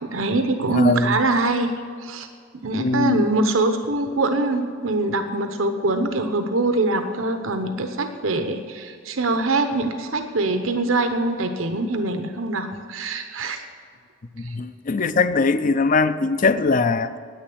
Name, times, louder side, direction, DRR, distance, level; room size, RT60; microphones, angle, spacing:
voice 1, 0.0-1.7 2.0-2.3 2.6-13.6 14.4-14.5, right 2 dB, 85° right, 7 dB, 1.0 m, -23 dB
voice 2, 0.7-1.2 2.8-3.3 14.4-17.2, left 3 dB, 40° left, 12 dB, 0.5 m, -21 dB
10.5 x 9.0 x 8.6 m, 2.1 s
head